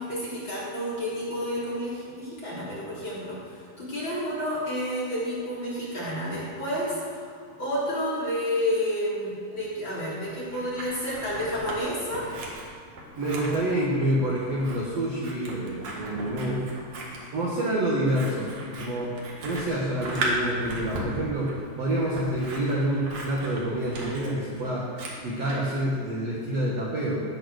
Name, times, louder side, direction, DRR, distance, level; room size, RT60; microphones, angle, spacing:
voice 1, 0.0-12.3 17.3-17.5, equal, 25° left, -8 dB, 3.8 m, -30 dB
Scissors, 10.2-11.8 12.1-25.7, right 2 dB, 50° right, 2.1 m, -36 dB
voice 2, 13.2-16.6 17.3-19.1 19.4-24.9 25.2-27.2, right 1 dB, 70° right, -4 dB, 1.5 m, -27 dB
18.0 x 6.8 x 6.5 m, 2.2 s
omnidirectional pair, 5.5 m